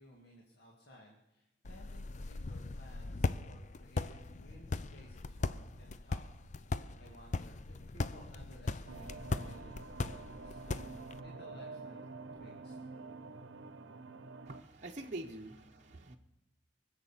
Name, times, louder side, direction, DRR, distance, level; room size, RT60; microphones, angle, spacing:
voice 1, 0.0-10.8 11.2-12.1 12.3-12.8, equal, 55° left, -2 dB, 2.2 m, -58 dB
sound 1, 1.6-11.2, left 3 dB, 40° left, 0.5 m, -39 dB
sound 2, 8.9-14.6, right 3 dB, 80° right, 0.8 m, -48 dB
voice 2, 14.5-16.2, right 2 dB, 40° right, 0 dB, 0.9 m, -45 dB
23.5 x 8.0 x 7.2 m, 0.96 s
head